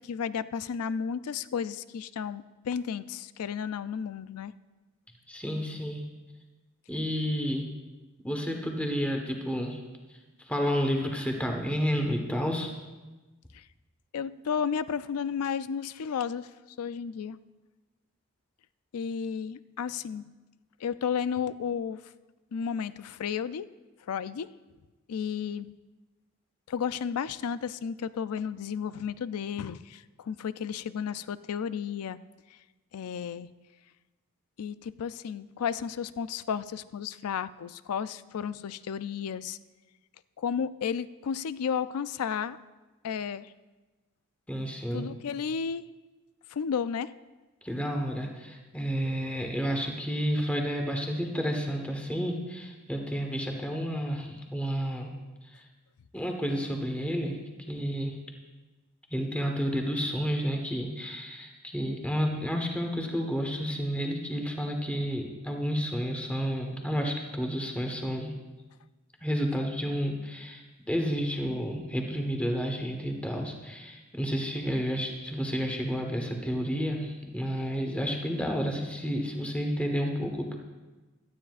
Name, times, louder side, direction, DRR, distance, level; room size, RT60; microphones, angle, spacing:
voice 1, 0.0-4.5 13.5-13.6 14.1-16.5 16.8-17.4 18.9-20.3 20.8-22.0 22.5-23.7 24.1-24.5 25.1-25.7 26.7-32.2 32.9-33.5 34.6-39.6 40.4-42.6 43.0-43.5 44.9-45.9 46.5-47.1, left 7 dB, 80° left, 15 dB, 0.4 m, -33 dB
voice 2, 5.3-6.0 6.9-7.7 8.2-9.8 10.1-12.7 44.5-45.1 47.6-55.1 55.4-55.7 56.1-57.4 57.7-58.2 59.1-68.3 69.2-80.6, equal, 5° left, 2 dB, 1.2 m, -31 dB
17.0 x 12.5 x 2.5 m, 1.2 s
head